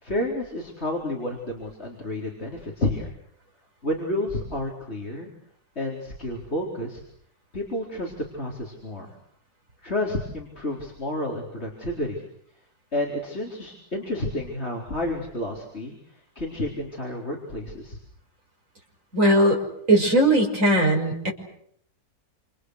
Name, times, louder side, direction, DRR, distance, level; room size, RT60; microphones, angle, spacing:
voice 1, 0.0-3.1 3.8-5.3 5.8-7.0 7.5-9.1 9.8-12.2 12.9-15.9 16.4-18.0, left 1 dB, 35° left, -1 dB, 4.5 m, -30 dB
voice 2, 19.1-19.6 19.9-21.3, right 1 dB, 45° right, 0 dB, 6.5 m, -19 dB
29.0 x 28.5 x 6.5 m, 0.69 s
omnidirectional pair, 1.8 m